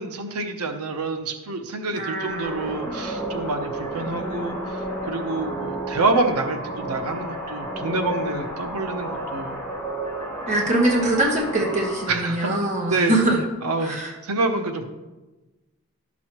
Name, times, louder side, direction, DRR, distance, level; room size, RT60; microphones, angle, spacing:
voice 1, 0.0-9.6 12.1-12.6 12.9-13.1 13.6-14.0 14.2-14.9, right 3 dB, 90° right, 7 dB, 0.8 m, -27 dB
voice 2, 1.9-2.7 10.5-13.4 13.8-14.1, right 1 dB, 30° right, -2 dB, 1.3 m, -23 dB
sound 1, 2.3-12.1, right 1 dB, ahead, 3.0 m, -31 dB
12.0 x 6.1 x 3.0 m, 1.1 s
head